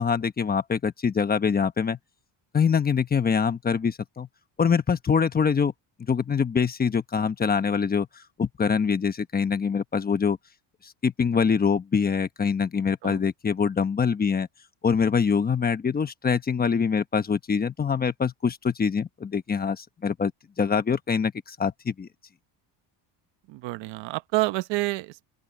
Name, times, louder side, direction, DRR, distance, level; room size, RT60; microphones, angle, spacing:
voice 1, 0.0-2.0 2.5-4.3 4.6-5.7 6.0-8.1 8.4-10.4 10.8-14.5 14.8-20.3 20.6-22.1, left 6 dB, 20° left, 1.1 m, -24 dB
voice 2, 23.5-25.2, right 21 dB, 75° right, 1.1 m, -28 dB
open air
cardioid pair, 155°, 44 cm